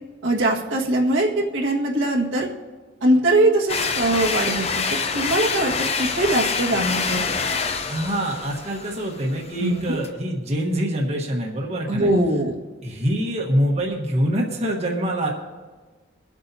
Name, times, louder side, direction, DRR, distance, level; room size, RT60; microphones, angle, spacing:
voice 1, 0.2-2.5 3.0-7.2 9.6-10.0 11.9-12.5, right 1 dB, 80° right, -2 dB, 1.7 m, -21 dB
sound 1, 3.7-10.1, left 5 dB, 35° left, 0.6 m, -26 dB
voice 2, 7.9-12.1 12.8-15.3, equal, 35° right, -1 dB, 1.2 m, -25 dB
23.5 x 8.2 x 2.7 m, 1.3 s
head